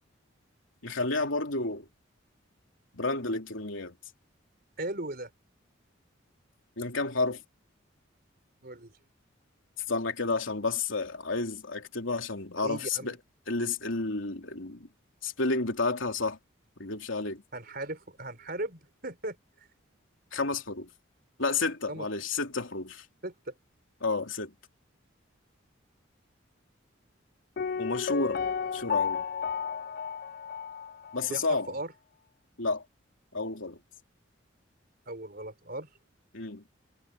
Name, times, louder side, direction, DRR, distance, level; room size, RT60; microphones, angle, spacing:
voice 1, 0.8-1.8 2.9-3.9 6.8-7.4 9.9-13.2 13.5-14.9 15.2-16.4 16.8-17.4 20.3-20.9 21.4-23.0 24.0-24.5 27.8-28.4 28.7-29.2 31.1-31.7 32.6-32.8 33.3-33.8 36.3-36.6, left 3 dB, 75° left, 3.0 m, -31 dB
voice 2, 4.8-5.3 8.6-8.9 12.6-13.2 17.5-19.4 21.9-22.0 23.2-23.5 31.3-31.9 35.1-35.9, right 2 dB, 50° right, 4.7 m, -37 dB
Piano, 27.6-31.3 31.6-31.7, left 6 dB, 50° left, 0.4 m, -32 dB
head